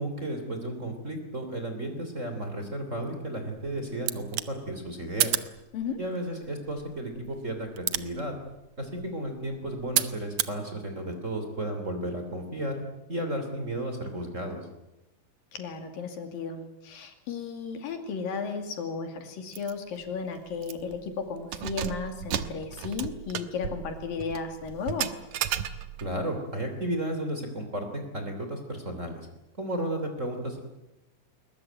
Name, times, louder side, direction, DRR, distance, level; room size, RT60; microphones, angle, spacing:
voice 1, 0.0-5.4 6.0-8.4 8.8-12.8 13.1-14.6 26.0-29.2 29.6-30.6, right 1 dB, 20° right, 4 dB, 3.0 m, -33 dB
sound 1, 3.5-10.6, right 12 dB, 80° right, 1.3 m, -34 dB
voice 2, 15.5-25.1, left 5 dB, 75° left, 5 dB, 4.2 m, -34 dB
Keys jangling, 19.5-19.7 20.1-20.2 20.6-21.0 21.4-26.1, right 10 dB, 65° right, 2.2 m, -34 dB
21.5 x 20.5 x 9.2 m, 0.97 s
omnidirectional pair, 4.1 m